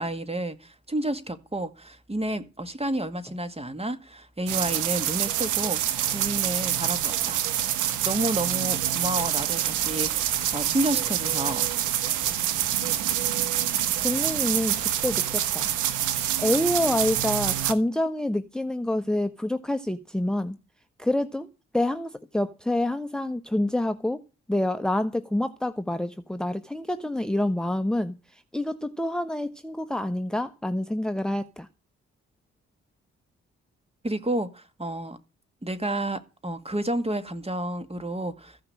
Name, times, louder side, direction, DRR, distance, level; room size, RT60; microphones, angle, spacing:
voice 1, 0.0-5.8 6.1-7.5 8.0-11.7 34.0-35.2 35.6-38.6, right 1 dB, 20° right, 2.1 m, -30 dB
sound 1, 4.5-17.7, right 11 dB, 90° right, 1.2 m, -26 dB
voice 2, 14.0-15.7 16.4-20.6 21.0-21.5 21.7-24.2 24.5-31.7, left 1 dB, ahead, 1.0 m, -27 dB
15.0 x 5.9 x 8.6 m
supercardioid pair, 45°, 29 cm